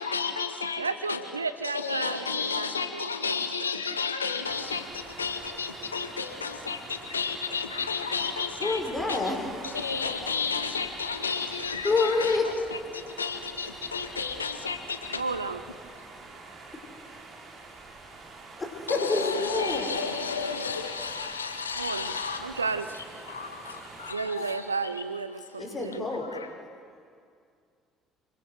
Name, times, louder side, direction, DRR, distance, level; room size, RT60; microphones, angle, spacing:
voice 1, 0.0-0.8 1.1-1.3 1.6-8.8 9.1-9.4 9.6-15.2 18.9-22.6 22.9-24.9 26.2-26.5, left 5 dB, 85° left, 7 dB, 0.9 m, -32 dB
voice 2, 0.8-3.4 15.1-15.6 21.8-22.9 24.1-26.1, right 4 dB, 85° right, 12 dB, 0.7 m, -33 dB
sound 1, 4.4-24.1, right 3 dB, 45° right, 4.2 m, -46 dB
voice 3, 8.6-9.8 11.8-12.4 18.6-19.9 23.6-24.2 25.6-26.2, left 3 dB, 25° left, 1 dB, 5.6 m, -28 dB
27.0 x 22.0 x 6.5 m, 2.2 s
figure-of-eight pair, 55°, 0 cm